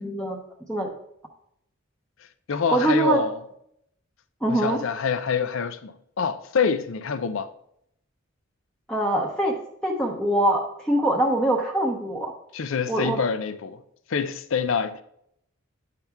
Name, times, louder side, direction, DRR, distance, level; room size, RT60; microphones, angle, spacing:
voice 1, 0.0-0.4 0.7-0.9 2.7-3.2 4.4-4.8 8.9-9.5 9.8-12.3 12.9-13.2, right 1 dB, 5° left, 0.8 m, -23 dB
voice 2, 2.5-3.4 4.5-7.5 12.5-13.8 14.1-15.0, left 6 dB, 70° left, 0.5 m, -26 dB
9.1 x 5.8 x 3.5 m
head